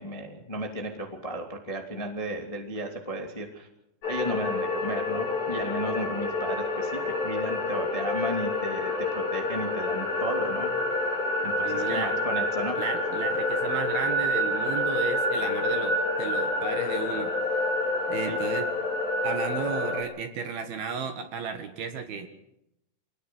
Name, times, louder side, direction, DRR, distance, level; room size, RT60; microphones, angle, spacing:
voice 1, 0.0-3.7 4.1-10.7 11.4-12.8 18.3-18.4, right 1 dB, 15° left, 2 dB, 1.5 m, -34 dB
sound 1, 4.0-20.0, left 2 dB, 50° left, 4.4 m, -28 dB
voice 2, 11.6-12.1 12.8-17.3 18.1-18.7 19.2-22.3, right 6 dB, 60° right, 7 dB, 3.1 m, -34 dB
26.0 x 19.5 x 6.3 m, 0.85 s
omnidirectional pair, 5.6 m